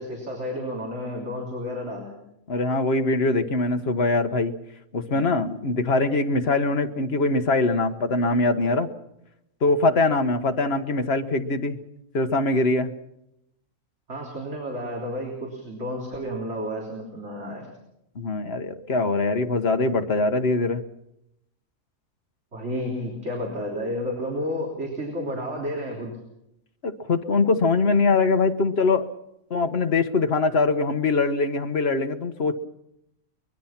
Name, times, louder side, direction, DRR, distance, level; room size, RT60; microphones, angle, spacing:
voice 1, 0.0-2.2 14.1-17.7 22.5-26.2, equal, 55° right, -1 dB, 3.9 m, -31 dB
voice 2, 2.5-4.5 4.9-8.9 9.6-11.8 12.1-12.9 18.1-20.8 26.8-29.1 29.5-32.6, left 3 dB, 45° left, 7 dB, 1.5 m, -22 dB
24.0 x 21.5 x 5.9 m, 0.82 s
omnidirectional pair, 1.5 m